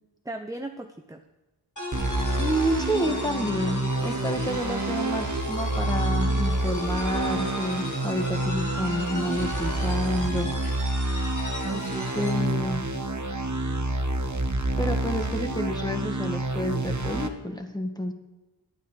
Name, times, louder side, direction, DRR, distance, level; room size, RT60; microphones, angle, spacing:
voice 1, 0.2-1.2 11.6-12.7, right 2 dB, 10° right, 5 dB, 0.8 m, -38 dB
sound 1, 1.8-12.5, equal, 40° left, 3.2 m, -36 dB
sound 2, 1.9-17.3, right 1 dB, 40° right, 1.3 m, -28 dB
voice 2, 2.4-10.5 12.1-12.8 14.8-18.1, equal, 10° left, 4 dB, 1.7 m, -29 dB
11.0 x 9.1 x 6.7 m, 1.1 s
wide cardioid pair, 45°, 44 cm